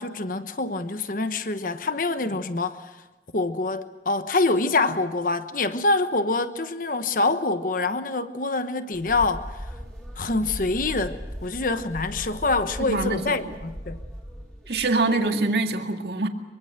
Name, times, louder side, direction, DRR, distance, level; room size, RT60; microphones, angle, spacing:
voice 1, 0.0-3.0 3.3-9.7 10.2-14.0, left 3 dB, 50° left, 1.1 m, -25 dB
sound 1, 8.9-15.3, equal, ahead, 3.9 m, -38 dB
voice 2, 12.9-13.4 14.7-16.3, right 2 dB, 65° right, 2.1 m, -24 dB
24.0 x 23.5 x 6.7 m
head